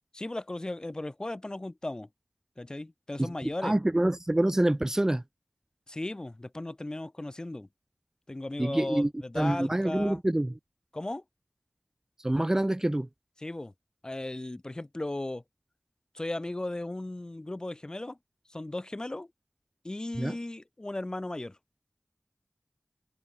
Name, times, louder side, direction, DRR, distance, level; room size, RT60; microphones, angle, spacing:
voice 1, 0.1-2.1 2.6-3.8 5.9-7.7 8.3-10.2 10.9-11.2 13.4-13.7 14.0-15.4 16.1-18.2 18.5-19.3 19.8-21.6, left 2 dB, 35° left, 3.7 m, -36 dB
voice 2, 3.6-5.2 8.6-9.1 9.4-10.5 12.2-13.1 20.2-20.4, right 1 dB, 20° right, 1.2 m, -26 dB
wide cardioid pair, 60°, 2 cm